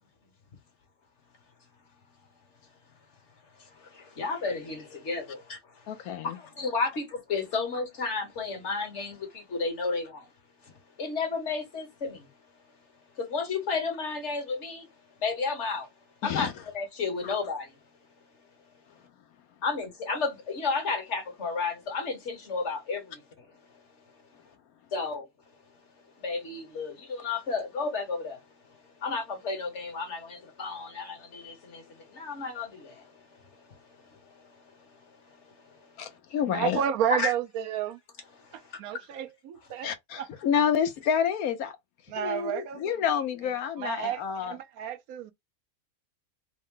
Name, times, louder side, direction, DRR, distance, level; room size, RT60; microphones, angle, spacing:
voice 1, 3.6-5.6 6.2-10.3 11.0-12.3 13.2-14.9 15.2-15.9 16.2-17.7 19.6-23.5 24.9-25.3 26.2-28.4 29.0-33.2 33.5-34.1 35.3-35.7 37.1-37.3 38.4-38.6, left 4 dB, 55° left, 1.5 m, -32 dB
voice 2, 5.9-6.4 16.2-16.5 17.2-17.4 36.0-36.8 39.8-41.7 42.1-44.6, left 8 dB, 85° left, 1.2 m, -29 dB
voice 3, 36.5-38.0 38.5-39.9 40.2-40.3 42.1-43.0 43.8-45.3, right 9 dB, 85° right, 1.1 m, -31 dB
3.6 x 2.2 x 3.6 m
omnidirectional pair, 1.5 m